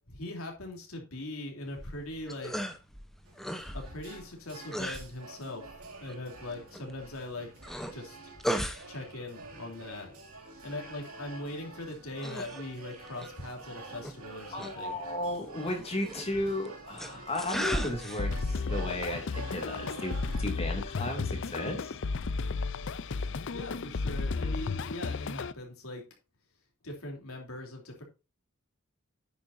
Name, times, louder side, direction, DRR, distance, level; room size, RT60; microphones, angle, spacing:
voice 1, 0.1-2.7 3.7-5.7 6.0-7.5 7.9-8.2 8.9-10.1 10.6-15.0 23.5-26.1 26.8-28.0, left 1 dB, 80° left, 1 dB, 3.1 m, -41 dB
sound 1, 1.7-20.4, equal, ahead, 0.9 m, -40 dB
sound 2, 3.2-20.4, right 3 dB, 90° right, 2.5 m, -48 dB
voice 2, 14.5-22.0, left 1 dB, 30° left, 3 dB, 2.4 m, -34 dB
sound 3, 18.2-25.5, left 4 dB, 60° left, 0.5 m, -33 dB
10.0 x 8.5 x 2.7 m, 0.28 s
head